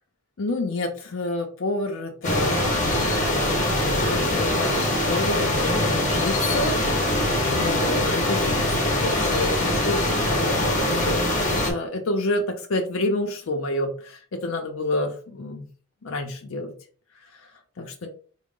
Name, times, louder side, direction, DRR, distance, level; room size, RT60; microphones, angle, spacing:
voice 1, 0.4-2.7 3.1-6.7 7.0-11.2 11.5-15.7 16.0-16.7 17.8-18.1, left 2 dB, 70° left, 2 dB, 0.5 m, -29 dB
sound 1, 2.2-11.7, left 1 dB, 35° left, 0.7 m, -23 dB
3.8 x 2.1 x 3.6 m, 0.43 s
head